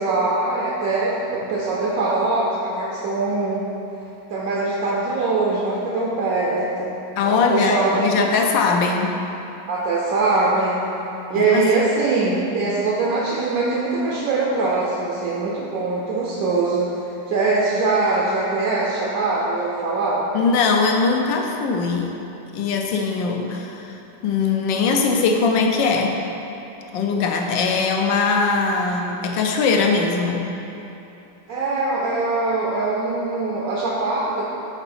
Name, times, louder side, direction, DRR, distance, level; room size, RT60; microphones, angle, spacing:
voice 1, 0.0-3.6 4.3-8.1 9.7-10.8 11.3-16.9 17.3-20.3 31.5-34.4, right 3 dB, 60° right, -5 dB, 1.0 m, -22 dB
voice 2, 7.2-9.2 11.3-11.7 20.3-22.1 22.5-23.9 24.2-26.2 26.9-30.4, left 4 dB, 80° left, 3 dB, 1.3 m, -20 dB
5.9 x 4.0 x 5.4 m, 2.9 s
omnidirectional pair, 2.1 m